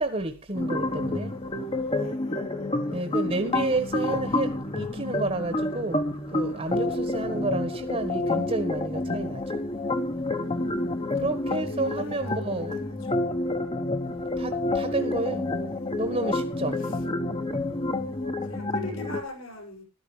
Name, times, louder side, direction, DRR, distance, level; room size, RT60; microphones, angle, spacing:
voice 1, 0.0-1.3 2.9-6.0 6.3-9.4 11.2-12.8 14.4-15.4 16.0-16.7, right 2 dB, 30° right, 1.6 m, -30 dB
sound 1, 0.5-19.2, left 2 dB, 25° left, 1.4 m, -29 dB
voice 2, 1.9-3.0 6.7-7.4 11.2-13.4 16.8-17.0 18.2-19.8, left 2 dB, 80° left, 7.5 m, -43 dB
15.0 x 13.0 x 3.4 m
head